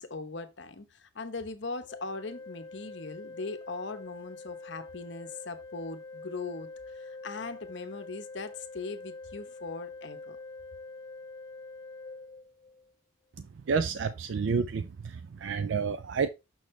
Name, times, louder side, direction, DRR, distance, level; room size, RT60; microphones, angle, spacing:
voice 1, 0.0-10.4, left 3 dB, 60° left, 0.9 m, -40 dB
Organ, 1.9-12.9, left 3 dB, 20° left, 1.0 m, -45 dB
voice 2, 13.4-16.3, right 5 dB, 65° right, 0.4 m, -30 dB
6.3 x 6.3 x 3.2 m
head